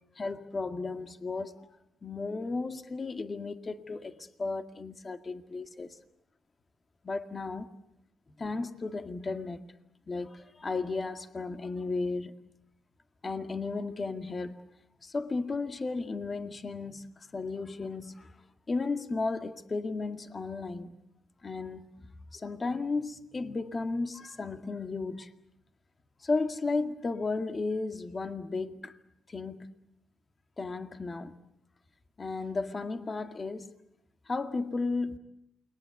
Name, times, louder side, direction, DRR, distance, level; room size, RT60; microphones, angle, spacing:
voice 1, 0.2-1.7 2.0-6.0 7.0-7.7 8.4-9.6 10.1-12.3 13.2-14.6 15.0-18.3 18.7-20.9 21.4-21.9 22.3-25.3 26.2-28.9 29.3-29.7 30.6-31.3 32.2-33.7 34.3-35.2, left 3 dB, 30° left, 2.0 m, -34 dB
29.0 x 22.0 x 8.3 m
cardioid pair, 90°, 0 cm